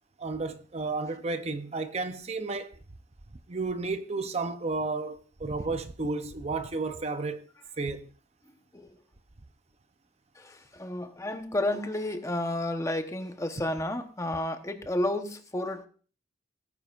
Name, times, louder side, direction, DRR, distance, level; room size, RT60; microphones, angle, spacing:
voice 1, 0.2-2.7 3.5-7.5 7.8-8.1, right 3 dB, 35° right, 0.7 m, -32 dB
voice 2, 10.4-15.9, left 1 dB, 15° left, 1.0 m, -31 dB
18.0 x 9.6 x 2.5 m
head